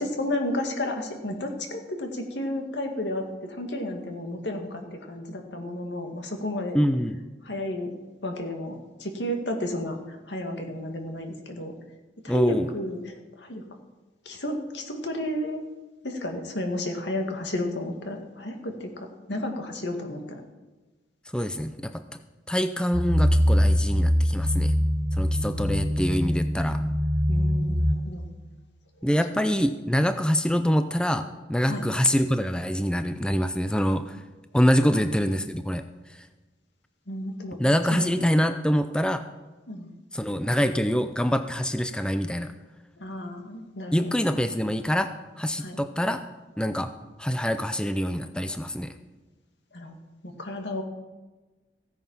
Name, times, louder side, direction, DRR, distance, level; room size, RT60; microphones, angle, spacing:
voice 1, 0.0-6.8 7.4-7.9 8.2-11.7 12.2-13.6 14.3-15.6 16.0-20.4 27.3-28.3 31.7-31.8 34.9-35.1 37.1-37.6 37.9-38.1 39.7-39.9 43.0-44.1 45.6-45.8 49.7-50.0 50.2-50.8, left 1 dB, 85° left, 3 dB, 2.1 m, -32 dB
voice 2, 6.7-7.2 12.3-12.7 21.3-22.0 22.5-24.7 25.2-26.8 29.0-34.2 34.5-35.8 37.6-39.2 40.1-42.5 43.9-45.1 45.4-46.2 46.6-46.9 47.2-48.9, equal, 5° left, 9 dB, 0.5 m, -25 dB
sound 1, 22.9-27.9, equal, 85° right, 1.9 m, -23 dB
15.5 x 9.3 x 5.7 m, 1.2 s
head